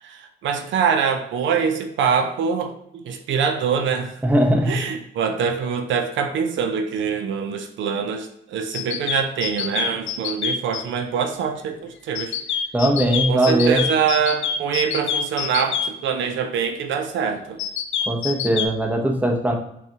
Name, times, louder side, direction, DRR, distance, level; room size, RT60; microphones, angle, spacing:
voice 1, 0.0-4.2 4.7-12.4 13.3-17.6, right 6 dB, 75° right, 6 dB, 0.5 m, -24 dB
voice 2, 4.2-4.8 12.7-13.8 18.1-19.6, right 1 dB, 10° right, 1 dB, 0.7 m, -19 dB
sound 1, 8.7-10.8 12.1-15.9 17.6-18.7, left 8 dB, 75° left, 0.4 m, -25 dB
5.4 x 2.3 x 2.8 m, 0.78 s
cardioid pair, 90°, 20 cm